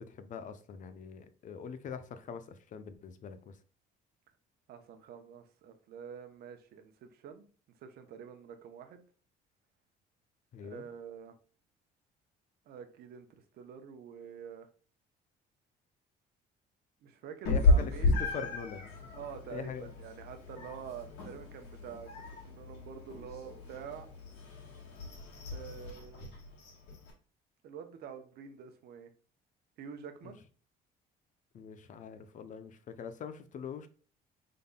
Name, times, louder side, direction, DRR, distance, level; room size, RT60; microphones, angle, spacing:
voice 1, 0.0-3.6 10.5-10.9 17.5-19.1 19.5-19.9 30.2-30.3 31.5-33.9, left 6 dB, 50° left, 0.6 m, -43 dB
voice 2, 4.7-7.4 7.8-9.0 10.6-11.3 12.7-14.7 17.0-18.5 19.1-22.1 22.4-24.1 25.5-26.4 27.6-29.1 29.8-30.4, right 7 dB, 70° right, 0.8 m, -47 dB
Meow, 17.5-27.1, left 2 dB, 90° left, 1.7 m, -33 dB
5.4 x 3.8 x 2.2 m
cardioid pair, 110°, 17 cm